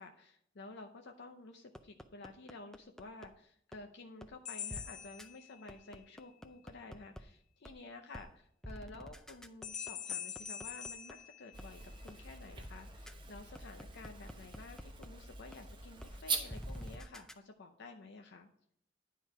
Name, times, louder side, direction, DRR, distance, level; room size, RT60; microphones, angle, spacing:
voice 1, 0.0-18.5, left 3 dB, 65° left, 5 dB, 0.6 m, -52 dB
sound 1, 1.7-3.3 3.7-3.8 4.2-4.3 4.7-4.8 5.2-5.3 5.7-7.2 7.6-7.7 8.1-8.3 8.6-11.1 11.6-11.7 12.1-12.2 12.6-12.7 13.1-13.2 13.5-15.1 15.5-15.6 16.0-16.1 16.5-17.3, equal, 5° left, 0.4 m, -47 dB
sound 2, 4.5-6.0 9.6-12.1, left 8 dB, 40° left, 0.9 m, -44 dB
sound 3, 11.5-17.0, right 4 dB, 25° right, 1.0 m, -44 dB
10.0 x 4.6 x 4.8 m, 0.68 s
head